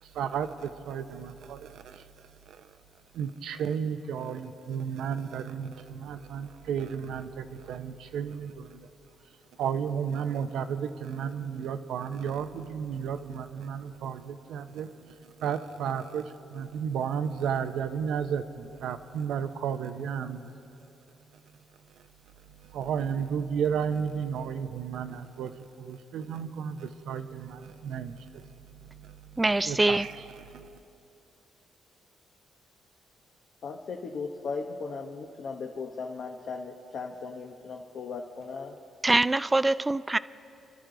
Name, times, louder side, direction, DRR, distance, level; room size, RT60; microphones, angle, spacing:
voice 1, 0.0-2.8 3.1-8.9 9.6-20.5 20.8-20.9 22.6-29.4 29.6-30.7, right 7 dB, 80° right, 10 dB, 0.8 m, -33 dB
voice 2, 29.4-30.1 39.0-40.2, right 2 dB, 15° right, 17 dB, 0.3 m, -24 dB
voice 3, 33.6-38.7, left 4 dB, 60° left, 1 dB, 1.0 m, -37 dB
29.5 x 12.5 x 3.9 m, 2.8 s
cardioid pair, 90°, 0 cm